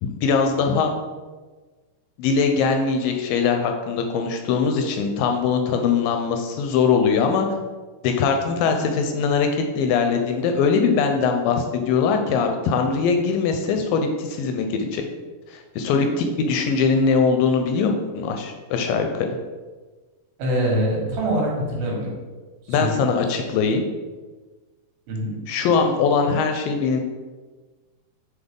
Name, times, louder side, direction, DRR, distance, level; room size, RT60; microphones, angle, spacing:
voice 1, 0.2-0.9 2.2-7.5 8.0-9.5 9.7-15.0 15.5-19.3 22.7-23.8 25.5-27.0, left 5 dB, 80° left, 4 dB, 2.1 m, -21 dB
voice 2, 20.4-22.1 22.7-22.9 25.1-25.3, right 1 dB, 85° right, -3 dB, 3.4 m, -24 dB
7.0 x 3.7 x 3.6 m, 1.3 s
omnidirectional pair, 4.2 m